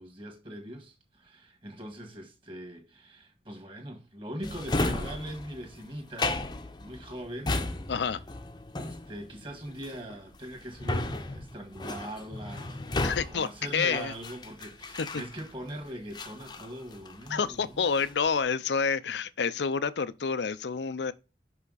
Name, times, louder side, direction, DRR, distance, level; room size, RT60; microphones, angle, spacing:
voice 1, 0.0-6.4 6.7-7.6 8.8-17.8, right 1 dB, 30° right, 1.6 m, -41 dB
Drawer open or close, 4.4-15.7 16.1-17.4 17.7-18.3, left 2 dB, 25° left, 0.7 m, -34 dB
voice 2, 7.9-8.2 13.0-14.1 17.3-21.1, left 5 dB, 85° left, 0.5 m, -28 dB
5.7 x 5.6 x 4.0 m
head